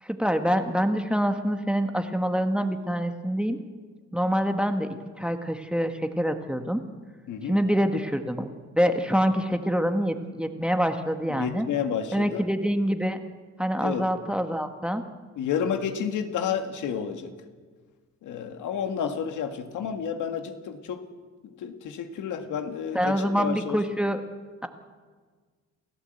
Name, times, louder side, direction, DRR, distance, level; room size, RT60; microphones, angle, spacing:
voice 1, 0.0-3.6 4.1-4.9 5.2-6.8 7.4-8.5 8.8-11.7 12.1-13.2 13.6-15.0 22.9-24.2, equal, 5° right, 6 dB, 1.5 m, -25 dB
voice 2, 7.3-7.6 11.3-12.4 13.8-14.0 15.4-17.3 18.2-21.1 21.6-23.8, left 7 dB, 80° left, 7 dB, 1.8 m, -30 dB
29.0 x 14.0 x 7.9 m, 1.5 s
cardioid pair, 90°, 30 cm